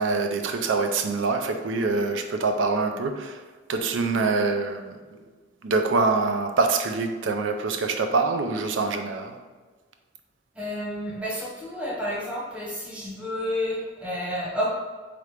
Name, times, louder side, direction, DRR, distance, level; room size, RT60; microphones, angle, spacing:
voice 1, 0.0-3.4 3.7-5.0 5.6-9.4, right 3 dB, 85° right, 6 dB, 0.4 m, -25 dB
voice 2, 10.5-14.7, equal, 5° right, -7 dB, 1.0 m, -30 dB
3.8 x 3.3 x 3.2 m, 1.4 s
head